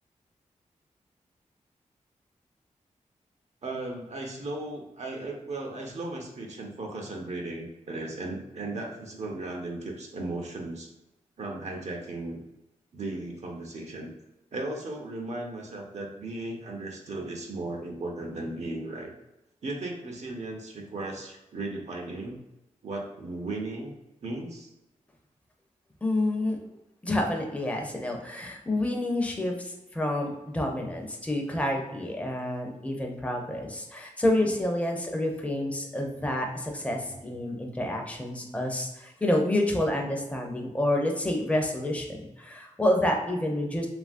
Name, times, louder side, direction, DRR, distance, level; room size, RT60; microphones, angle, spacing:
voice 1, 3.6-10.9 11.4-12.4 12.9-14.1 14.5-19.1 19.6-22.4 22.8-23.9 24.2-24.7 34.4-34.5, right 2 dB, 55° right, 1 dB, 0.5 m, -36 dB
voice 2, 26.0-26.6 27.0-43.9, left 1 dB, 10° left, 1 dB, 0.6 m, -28 dB
2.8 x 2.4 x 2.5 m, 0.96 s
cardioid pair, 45°, 14 cm